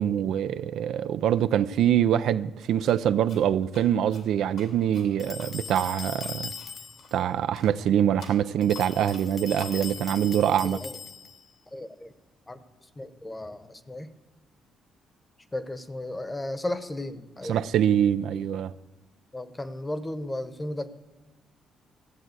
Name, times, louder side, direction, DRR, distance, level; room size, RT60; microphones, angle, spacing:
voice 1, 0.0-6.5 7.1-10.8 17.4-18.7, right 10 dB, 80° right, 0.4 m, -24 dB
sound 1, 2.9-3.0 3.3-7.3 7.5-7.7 8.2-9.9, left 3 dB, 75° left, 2.6 m, -50 dB
sound 2, 5.2-7.2 8.6-11.5, left 5 dB, 40° left, 0.4 m, -40 dB
voice 2, 10.6-11.0 11.7-12.1 12.5-12.6 13.0-14.1 15.5-17.6 19.3-20.9, left 1 dB, 20° left, 1.0 m, -34 dB
15.0 x 7.6 x 8.0 m
cardioid pair, 90°, 0 cm